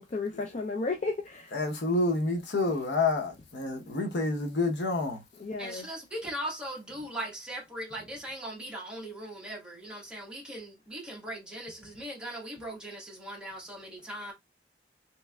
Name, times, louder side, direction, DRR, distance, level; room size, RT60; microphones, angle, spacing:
voice 1, 0.0-1.6 5.4-5.9, left 3 dB, 40° left, 0.4 m, -33 dB
voice 2, 1.5-5.2, left 2 dB, 80° left, 0.8 m, -28 dB
voice 3, 5.6-14.3, right 1 dB, 5° right, 1.2 m, -39 dB
3.2 x 3.1 x 2.2 m
head